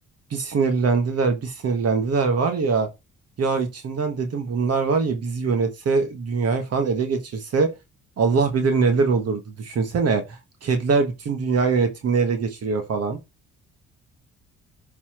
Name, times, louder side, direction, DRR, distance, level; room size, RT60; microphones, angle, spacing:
voice 1, 0.3-2.9 3.4-7.7 8.2-13.2, right 4 dB, 55° right, 1.4 m, -23 dB
12.5 x 4.2 x 3.0 m
cardioid pair, 90°, 30 cm